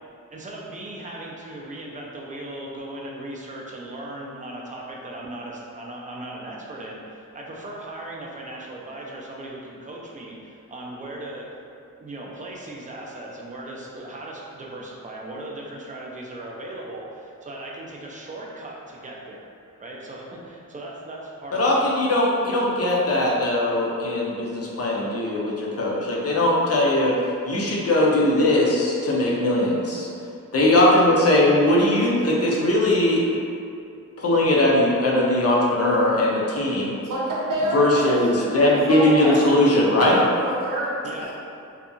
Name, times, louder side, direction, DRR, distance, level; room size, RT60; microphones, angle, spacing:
voice 1, 0.3-11.5 12.0-19.5 19.8-22.1 30.7-31.4 37.8-38.9 41.0-41.3, right 1 dB, 25° right, -2 dB, 0.3 m, -37 dB
voice 2, 21.5-27.1 27.5-30.1 30.5-33.2 34.2-37.0 37.7-40.2, left 1 dB, 50° left, -4 dB, 0.5 m, -20 dB
voice 3, 37.0-38.1 38.5-39.5 40.1-41.3, right 1 dB, 85° right, -6 dB, 0.7 m, -28 dB
2.7 x 2.2 x 2.5 m, 2.5 s
wide cardioid pair, 130°, 31 cm